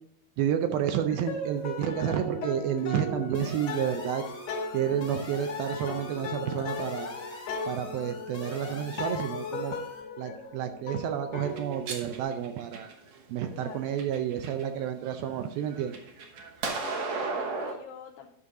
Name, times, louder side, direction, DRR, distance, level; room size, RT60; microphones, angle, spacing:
voice 1, 0.4-4.3 4.7-7.1 7.7-9.8 10.2-12.9 13.3-15.9, right 9 dB, 80° right, 7 dB, 2.3 m, -30 dB
sound 1, 1.1-12.2, left 3 dB, 55° left, 2.1 m, -37 dB
sound 2, 3.3-10.0, left 2 dB, 40° left, 1.2 m, -45 dB
sound 3, 11.4-13.2 13.8-14.6 15.0-17.7, right 4 dB, 60° right, 1.8 m, -35 dB
voice 2, 13.5-14.0 16.8-18.3, left 7 dB, 80° left, 1 dB, 2.0 m, -46 dB
11.0 x 6.3 x 3.8 m, 0.70 s
omnidirectional pair, 4.6 m